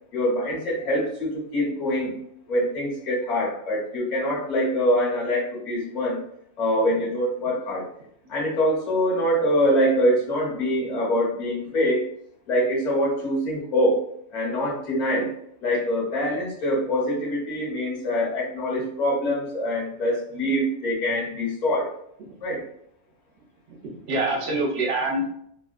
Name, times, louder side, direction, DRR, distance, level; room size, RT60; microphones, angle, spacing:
voice 1, 0.1-2.2 2.5-6.2 6.6-7.9 8.3-12.1 12.5-14.0 14.3-15.3 15.6-21.9 22.4-22.6, equal, 35° left, -4 dB, 0.9 m, -24 dB
voice 2, 23.7-25.3, right 2 dB, 55° right, -1 dB, 0.9 m, -26 dB
2.6 x 2.3 x 2.3 m, 0.69 s
omnidirectional pair, 1.4 m